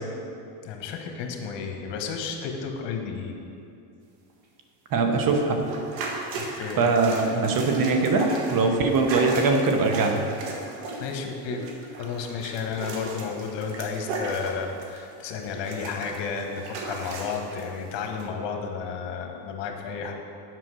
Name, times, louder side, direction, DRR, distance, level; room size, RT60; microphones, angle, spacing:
voice 1, 0.6-3.3 6.3-6.8 11.0-11.7 11.9-20.1, left 5 dB, 65° left, 3 dB, 1.4 m, -32 dB
voice 2, 4.9-5.6 6.8-10.2, right 3 dB, 45° right, 4 dB, 1.1 m, -22 dB
sound 1, 5.1-15.1 15.4-17.6 18.2-18.3, right 2 dB, 70° right, 1.5 m, -36 dB
7.6 x 6.0 x 6.2 m, 2.6 s
supercardioid pair, 105°, 46 cm